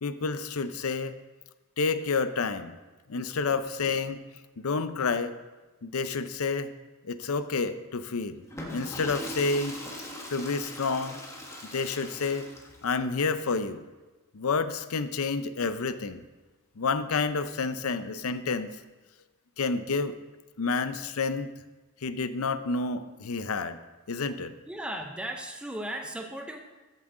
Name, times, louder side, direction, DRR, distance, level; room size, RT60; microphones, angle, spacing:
voice 1, 0.0-1.2 1.8-2.7 3.1-4.2 4.6-5.3 5.8-6.7 7.0-8.4 8.7-9.8 10.3-11.2 11.7-12.5 12.8-13.8 14.3-16.2 16.8-18.7 19.6-20.2 20.6-21.5 22.0-23.8 24.1-24.5, left 4 dB, 75° left, 12 dB, 0.6 m, -29 dB
Water / Toilet flush, 8.4-12.9, left 1 dB, 15° left, 1.4 m, -40 dB
voice 2, 24.7-26.6, right 1 dB, 5° right, 3 dB, 0.6 m, -36 dB
14.0 x 7.3 x 3.8 m, 1.2 s
head